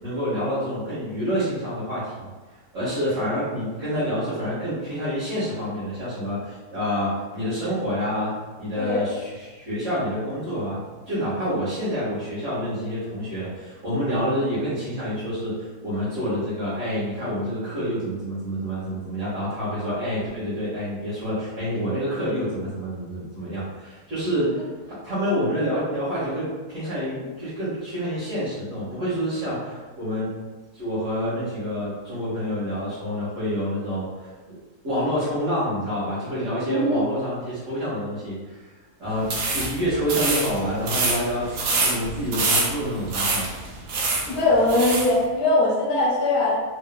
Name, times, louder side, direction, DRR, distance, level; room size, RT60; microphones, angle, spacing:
voice 1, 0.0-2.3 2.7-10.8 11.1-30.3 30.7-34.6 34.8-38.7 39.0-43.5, equal, 50° right, -14 dB, 1.7 m, -28 dB
voice 2, 8.8-9.1 24.4-24.5 36.6-37.0 44.3-46.6, left 2 dB, 65° left, -7 dB, 1.5 m, -21 dB
sound 1, 39.2-45.1, right 3 dB, 70° right, 1.1 m, -26 dB
3.8 x 2.7 x 2.2 m, 1.3 s
omnidirectional pair, 1.7 m